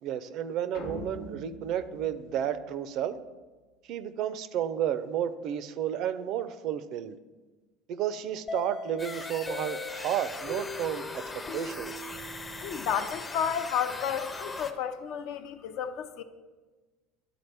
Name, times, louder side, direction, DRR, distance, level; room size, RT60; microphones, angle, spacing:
voice 1, 0.0-3.2 3.9-7.2 7.9-11.2 11.5-11.9, right 10 dB, 60° right, 0.4 m, -32 dB
sound 1, 0.7-3.2, equal, 80° left, 1.0 m, -43 dB
sound 2, 8.5-13.2, left 3 dB, 40° left, 1.1 m, -41 dB
sound 3, 9.0-14.7, left 3 dB, 20° left, 0.6 m, -40 dB
voice 2, 12.6-16.2, left 8 dB, 65° left, 0.5 m, -32 dB
11.0 x 3.8 x 3.3 m
supercardioid pair, 90°, 0 cm